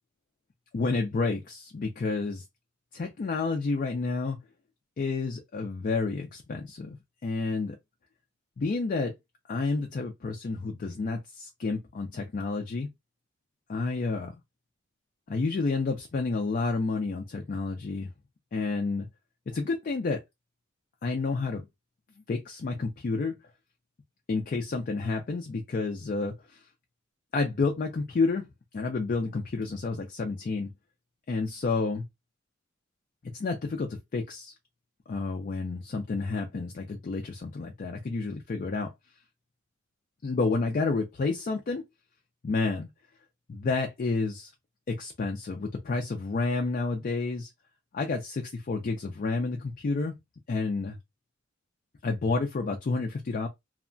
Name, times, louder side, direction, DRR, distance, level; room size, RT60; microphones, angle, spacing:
voice 1, 0.7-2.4 2.9-4.4 5.0-7.0 7.2-7.8 8.6-9.2 9.5-12.9 13.7-14.3 15.3-18.1 18.5-19.1 19.5-20.2 21.0-21.7 22.3-23.3 24.3-26.6 27.3-28.5 28.7-30.7 31.3-32.0 33.3-34.5 35.1-38.9 40.2-41.8 42.4-42.9 43.5-44.5 44.9-47.5 47.9-50.2 50.5-51.0 52.0-53.5, left 3 dB, 40° left, 0.4 m, -30 dB
2.8 x 2.2 x 2.5 m
head